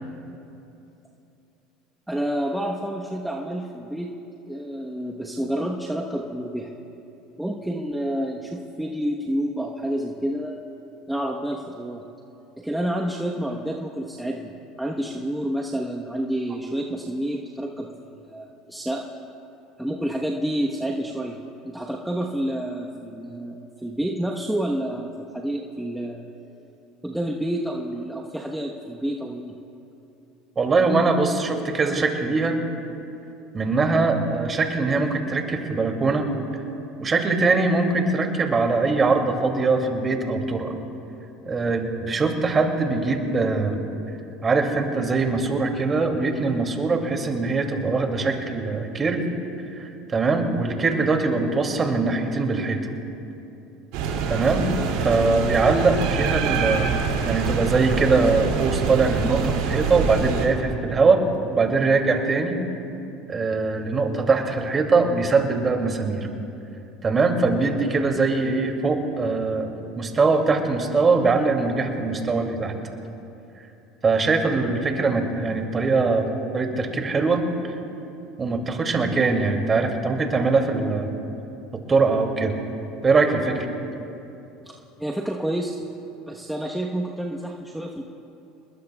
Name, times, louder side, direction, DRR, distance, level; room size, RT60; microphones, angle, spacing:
voice 1, 2.1-4.1 4.5-6.7 7.4-10.6 11.1-12.0 12.6-19.0 19.8-21.4 21.6-26.2 27.0-29.5 84.7-85.8 86.3-88.0, right 1 dB, 5° right, -1 dB, 1.1 m, -29 dB
voice 2, 30.6-32.6 33.5-36.3 37.0-40.7 41.4-43.8 44.4-49.2 49.8-52.9 54.3-54.6 55.0-56.9 57.2-61.2 61.5-62.5 63.3-66.3 67.0-69.7 70.0-72.8 74.0-76.3 76.5-77.4 78.4-81.1 81.7-82.5 83.0-83.7, right 3 dB, 30° right, 3 dB, 2.5 m, -22 dB
sound 1, 53.9-60.5, right 5 dB, 70° right, 2.5 m, -25 dB
29.5 x 21.0 x 2.3 m, 2.9 s
hypercardioid pair, 90°, 0 cm